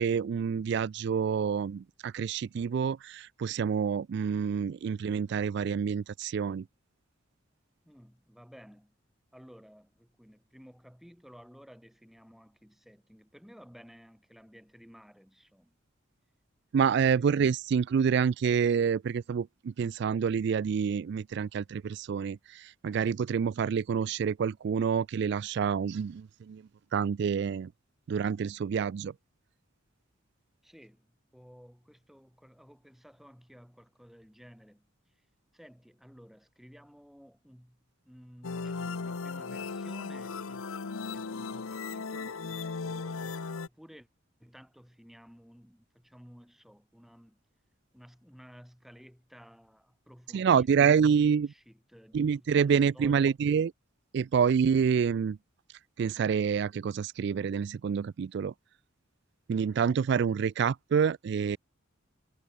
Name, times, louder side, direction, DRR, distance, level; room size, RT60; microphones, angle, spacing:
voice 1, 0.0-6.7 16.7-26.6 26.9-27.7 28.1-29.1 50.3-51.5 52.1-53.7 54.1-55.4 56.0-58.5 59.5-61.6, right 6 dB, 55° right, 0.3 m, -27 dB
voice 2, 7.8-8.9 9.3-15.8 30.6-35.2 35.5-40.6 41.0-43.3 43.7-44.1 44.4-47.4 47.9-52.5 52.9-53.3, equal, ahead, 1.3 m, -54 dB
sound 1, 38.4-43.7, left 4 dB, 85° left, 0.8 m, -37 dB
head